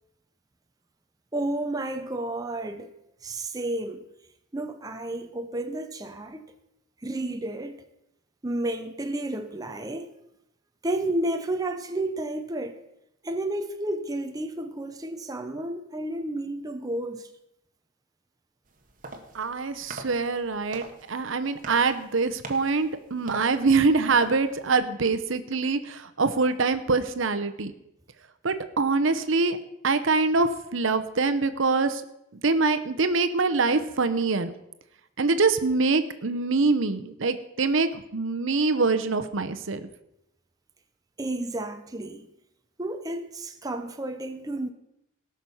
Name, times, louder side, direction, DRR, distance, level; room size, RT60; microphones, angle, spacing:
voice 1, 1.3-2.9 3.2-4.0 4.5-6.5 7.0-7.8 8.4-10.1 10.8-12.8 13.2-17.3 41.2-42.3 42.8-44.7, right 1 dB, 20° right, 0.7 m, -31 dB
sound 1, 18.7-24.8, right 2 dB, 40° right, 1.4 m, -44 dB
voice 2, 19.3-27.7 28.4-29.6 29.8-32.0 32.3-34.5 35.2-39.9, right 4 dB, 70° right, 0.8 m, -24 dB
18.5 x 6.1 x 5.5 m
head